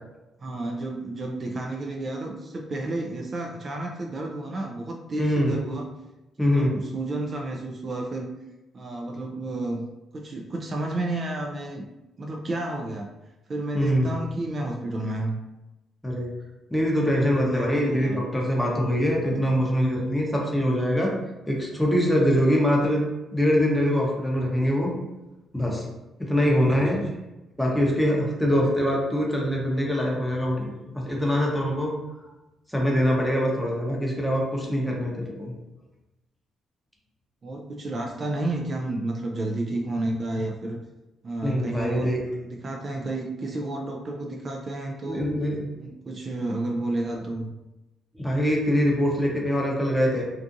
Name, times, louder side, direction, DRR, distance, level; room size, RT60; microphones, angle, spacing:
voice 1, 0.4-5.9 6.4-8.4 8.7-11.9 12.2-13.1 13.5-15.4 17.3-18.3 26.4-27.1 37.4-40.8 41.2-45.3 45.8-47.5, right 2 dB, 40° right, 1 dB, 0.3 m, -31 dB
voice 2, 5.2-5.6 6.4-6.7 13.7-14.1 16.0-16.3 16.7-21.1 21.5-23.0 23.3-24.9 25.5-25.9 26.3-27.0 27.6-31.9 32.7-35.5 41.4-42.2 45.1-45.7 48.1-50.2, equal, 5° left, -2 dB, 0.7 m, -23 dB
2.6 x 2.4 x 2.5 m, 1.0 s
cardioid pair, 90°, 0 cm